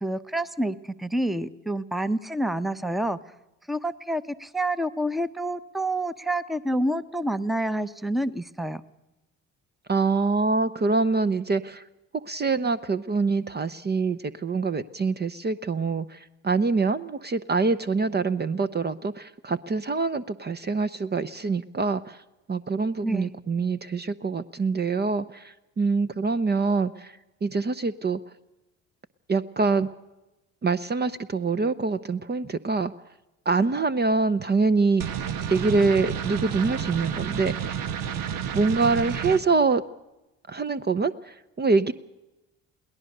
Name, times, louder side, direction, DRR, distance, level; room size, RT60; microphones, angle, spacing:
voice 1, 0.0-3.2 3.7-8.8 23.0-23.3, right 1 dB, ahead, 15 dB, 0.9 m, -28 dB
voice 2, 9.9-11.8 12.1-22.2 22.5-27.1 27.4-28.2 29.3-29.9 30.6-32.9 33.5-35.0 35.5-37.8 38.5-39.8 40.5-41.9, right 4 dB, 30° right, 13 dB, 0.8 m, -25 dB
sound 1, 35.0-39.4, right 8 dB, 65° right, 1.2 m, -30 dB
22.5 x 17.5 x 6.6 m, 0.98 s
hypercardioid pair, 60°, 36 cm